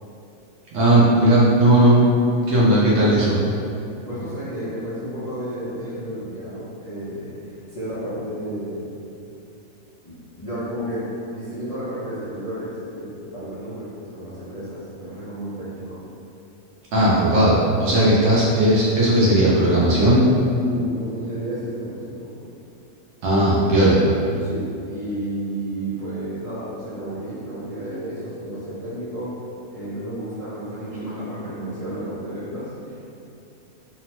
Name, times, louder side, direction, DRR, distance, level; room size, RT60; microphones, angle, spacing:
voice 1, 0.7-2.0 2.5-3.4 16.9-20.2 23.2-24.0, right 1 dB, 70° right, -7 dB, 0.8 m, -16 dB
voice 2, 4.0-9.0 10.0-16.0 20.5-22.3 24.4-29.4 29.7-33.0, right 1 dB, 45° left, -14 dB, 0.4 m, -32 dB
2.9 x 2.0 x 2.9 m, 2.7 s
omnidirectional pair, 1.6 m